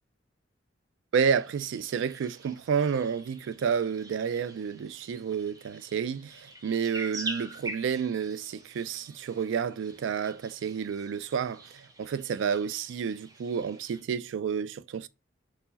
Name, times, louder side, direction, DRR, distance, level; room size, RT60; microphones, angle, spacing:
voice 1, 1.1-15.1, right 7 dB, 80° right, 0.3 m, -30 dB
sound 1, 1.3-14.0, right 2 dB, 20° right, 0.6 m, -45 dB
4.5 x 2.0 x 3.9 m
head